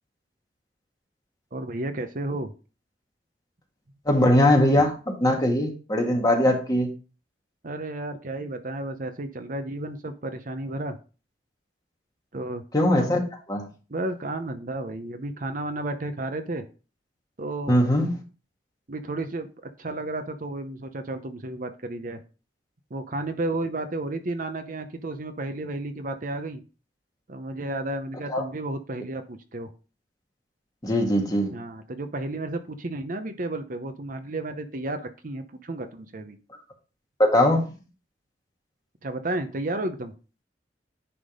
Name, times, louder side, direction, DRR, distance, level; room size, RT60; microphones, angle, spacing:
voice 1, 1.5-2.5 7.6-11.0 12.3-12.6 13.0-13.1 13.9-16.6 17.4-17.8 18.9-19.5 19.8-22.2 22.9-26.6 27.3-29.7 31.5-36.4 39.0-40.1, right 2 dB, 50° right, 7 dB, 0.9 m, -32 dB
voice 2, 4.1-6.9 12.7-13.2 13.5-13.7 17.7-18.2 28.3-28.4 30.8-31.5 37.2-37.7, left 1 dB, 20° left, 1 dB, 1.9 m, -21 dB
10.0 x 3.7 x 5.1 m, 0.35 s
head